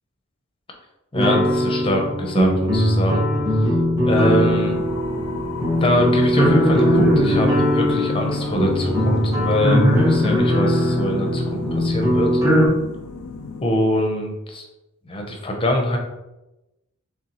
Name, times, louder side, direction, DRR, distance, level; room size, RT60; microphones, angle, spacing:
voice 1, 1.1-3.2 4.0-4.8 5.7-12.3 13.6-14.6 15.1-16.0, left 1 dB, 25° left, 2 dB, 0.7 m, -23 dB
sound 1, 1.1-12.7, equal, 15° right, 0.8 m, -19 dB
sound 2, 4.1-13.6, left 4 dB, 70° left, 0.4 m, -34 dB
3.9 x 3.4 x 2.9 m, 0.97 s
head